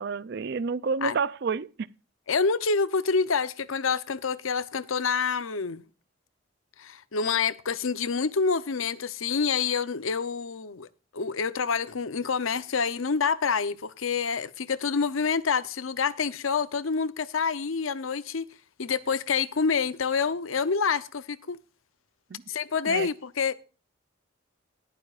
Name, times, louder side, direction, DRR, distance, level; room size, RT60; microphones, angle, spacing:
voice 1, 0.0-1.7 22.3-22.4 22.9-23.1, right 5 dB, 55° right, 0.4 m, -29 dB
voice 2, 2.3-5.8 6.8-10.9 11.1-18.4 18.8-21.6 22.5-23.5, left 5 dB, 90° left, 0.8 m, -27 dB
19.0 x 9.4 x 2.5 m
head